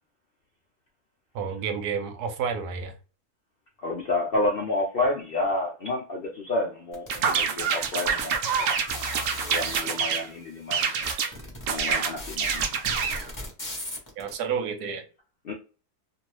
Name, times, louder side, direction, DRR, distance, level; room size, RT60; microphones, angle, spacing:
voice 1, 1.3-2.9 14.2-15.0, right 6 dB, 80° right, 1.2 m, -30 dB
voice 2, 3.8-8.4 9.5-11.1 11.7-12.7 15.4-15.5, left 2 dB, 60° left, 0.6 m, -29 dB
sound 1, 6.9-9.8 10.5-10.6 10.8-14.3, left 1 dB, 15° left, 0.9 m, -37 dB
sound 2, 7.1-10.3 10.7-11.3 11.7-13.2, right 6 dB, 65° right, 0.8 m, -26 dB
2.7 x 2.6 x 3.0 m
omnidirectional pair, 1.6 m